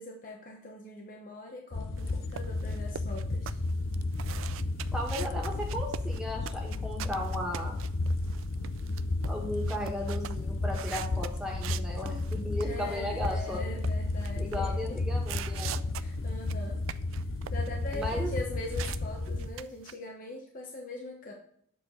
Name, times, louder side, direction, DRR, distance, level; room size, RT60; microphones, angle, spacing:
voice 1, 0.0-3.6 12.6-15.0 16.0-16.8 17.5-21.3, left 2 dB, 45° left, 1 dB, 0.9 m, -42 dB
sound 1, 1.7-19.5, left 2 dB, 85° left, 0.6 m, -33 dB
sound 2, 2.0-13.0 13.2-14.7 15.2-19.0 19.3-19.9, right 10 dB, 85° right, 0.3 m, -43 dB
voice 2, 4.9-7.8 9.3-13.6 14.4-15.7 17.9-18.3, left 1 dB, 5° right, -2 dB, 1.5 m, -35 dB
7.5 x 4.5 x 3.9 m, 0.64 s
head